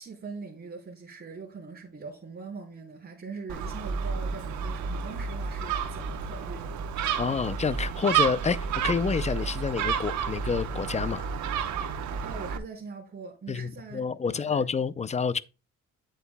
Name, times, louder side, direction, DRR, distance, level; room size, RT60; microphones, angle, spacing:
voice 1, 0.0-6.8 12.2-14.6, right 4 dB, 30° right, 3.2 m, -42 dB
Gull seagull, 3.5-12.6, right 6 dB, 70° right, 1.0 m, -31 dB
voice 2, 7.2-11.3 13.5-15.4, left 5 dB, 25° left, 0.5 m, -28 dB
9.2 x 8.2 x 2.2 m
cardioid pair, 90°, 30 cm